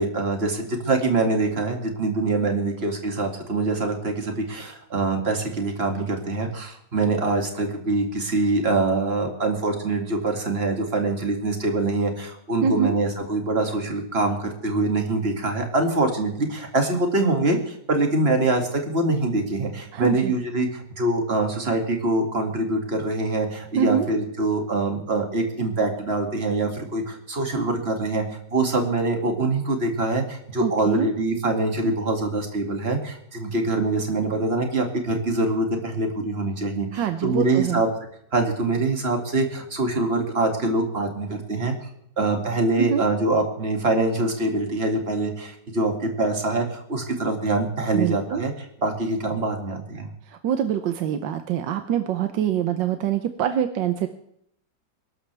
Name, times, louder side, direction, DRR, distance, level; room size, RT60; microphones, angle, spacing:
voice 1, 0.0-37.9 38.3-41.7 42.2-48.5 48.8-50.1, right 2 dB, 35° right, 3 dB, 2.5 m, -24 dB
voice 2, 12.6-12.9 19.9-20.3 23.8-24.1 30.6-31.1 36.9-37.8 42.8-43.0 47.9-48.4 50.3-54.1, right 9 dB, 90° right, 8 dB, 1.5 m, -24 dB
22.0 x 13.0 x 3.4 m, 0.72 s
omnidirectional pair, 1.9 m